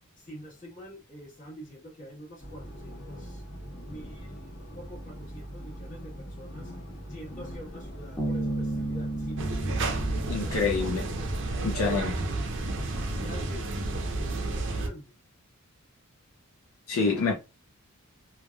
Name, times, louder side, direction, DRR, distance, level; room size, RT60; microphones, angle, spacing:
voice 1, 0.2-3.4 3.9-6.7 7.1-10.0 10.4-11.4 12.0-12.4 12.7-15.1, equal, 35° left, 1.2 m, -46 dB
sound 1, 2.4-10.3, equal, 50° left, 1.3 m, -42 dB
Bass guitar, 8.2-11.6, right 2 dB, 15° left, 0.7 m, -34 dB
sound 2, 9.4-14.9, right 2 dB, 55° right, 0.5 m, -31 dB
voice 2, 10.3-11.1 11.6-12.1 16.9-17.3, left 4 dB, 70° left, 0.5 m, -26 dB
3.2 x 2.3 x 2.2 m
head